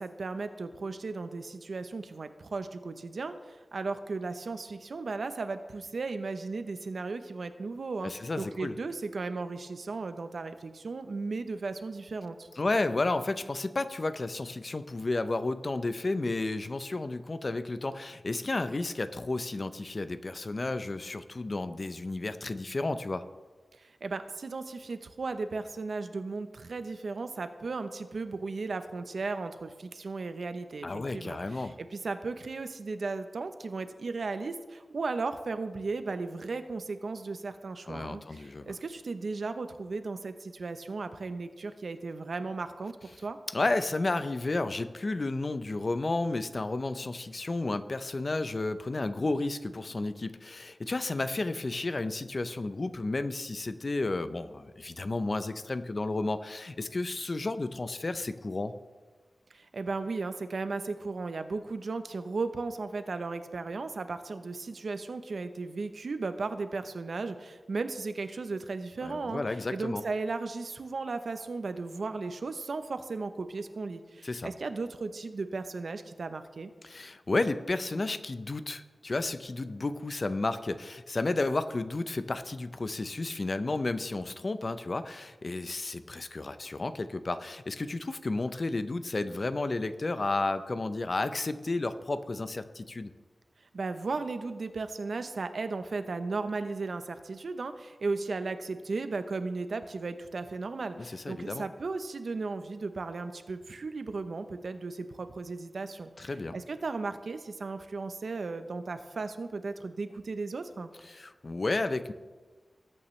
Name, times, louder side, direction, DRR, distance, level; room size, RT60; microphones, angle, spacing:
voice 1, 0.0-8.1 8.4-12.5 23.8-43.0 43.2-43.4 59.5-69.4 69.7-76.7 93.7-110.9, right 3 dB, 65° right, 10 dB, 0.8 m, -36 dB
voice 2, 8.0-8.7 12.6-23.2 30.8-31.7 37.9-38.7 43.5-58.7 69.0-70.0 74.2-74.5 76.8-93.1 101.0-101.7 106.2-106.6 111.1-112.1, left 2 dB, 40° left, 11 dB, 0.6 m, -32 dB
20.0 x 8.7 x 3.2 m, 1.3 s
wide cardioid pair, 115°, 0 cm